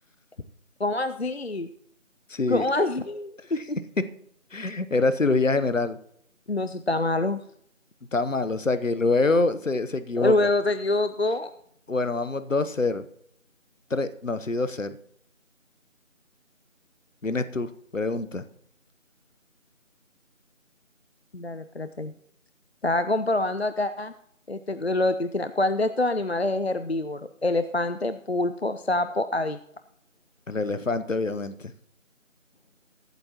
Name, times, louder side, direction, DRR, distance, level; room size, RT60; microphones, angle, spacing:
voice 1, 0.8-1.7 2.5-3.8 6.5-7.4 10.2-11.5 21.3-22.1 22.8-24.1 24.5-29.6, left 2 dB, 55° left, 11 dB, 0.5 m, -26 dB
voice 2, 2.3-2.7 4.5-6.0 8.1-10.5 11.9-13.1 13.9-15.0 17.2-18.4 30.5-31.7, left 3 dB, 70° left, 13 dB, 1.0 m, -25 dB
22.0 x 8.0 x 2.9 m, 0.71 s
figure-of-eight pair, 175°, 39 cm